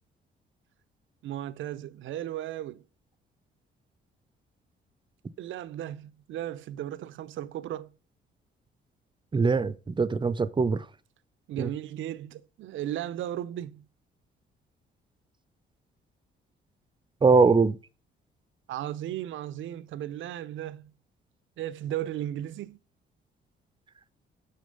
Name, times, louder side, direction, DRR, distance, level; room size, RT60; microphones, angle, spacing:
voice 1, 1.2-2.8 5.4-7.9 11.5-13.8 18.7-20.9 21.6-22.8, right 12 dB, 75° right, 0.6 m, -35 dB
voice 2, 9.3-10.9 11.6-11.7 17.2-17.8, right 4 dB, 25° right, 0.6 m, -22 dB
6.4 x 6.3 x 5.3 m
cardioid pair, 90°, 20 cm